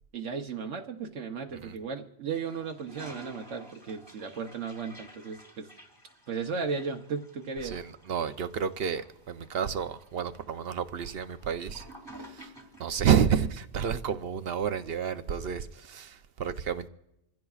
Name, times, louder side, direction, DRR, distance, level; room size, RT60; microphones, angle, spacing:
voice 1, 0.1-5.7 6.3-7.8, right 5 dB, 75° right, 1.2 m, -35 dB
Toilet flush, 2.3-13.0, right 1 dB, 20° left, 2.2 m, -52 dB
voice 2, 7.6-11.9 12.2-12.5 12.8-16.9, right 7 dB, 60° right, 0.8 m, -30 dB
26.5 x 15.5 x 2.4 m
omnidirectional pair, 1.2 m